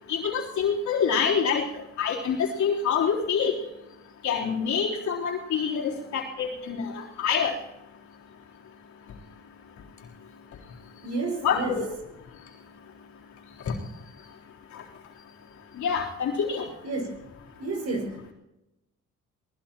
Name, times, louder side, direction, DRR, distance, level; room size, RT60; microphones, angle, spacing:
voice 1, 0.1-1.6 2.0-3.5 4.2-6.9 7.2-7.5 11.4-11.9 13.7-13.8 15.8-16.7, left 6 dB, 70° left, -4 dB, 3.7 m, -26 dB
voice 2, 11.0-11.8 16.8-17.1 17.6-18.3, right 3 dB, 60° right, 2 dB, 5.7 m, -31 dB
23.0 x 19.5 x 3.0 m, 0.92 s
cardioid pair, 90°, 30 cm